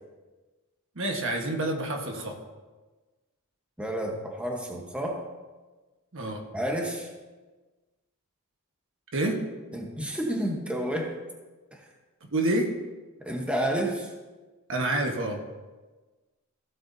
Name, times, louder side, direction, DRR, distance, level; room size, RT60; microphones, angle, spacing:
voice 1, 0.9-2.3 6.1-6.4 9.1-9.4 12.3-12.7 14.7-15.4, right 1 dB, 60° right, 2 dB, 1.4 m, -27 dB
voice 2, 3.8-5.2 6.5-7.1 9.7-11.1 11.7-11.8 13.2-14.1, right 1 dB, 5° right, 0 dB, 1.1 m, -30 dB
15.5 x 8.1 x 2.7 m, 1.3 s
head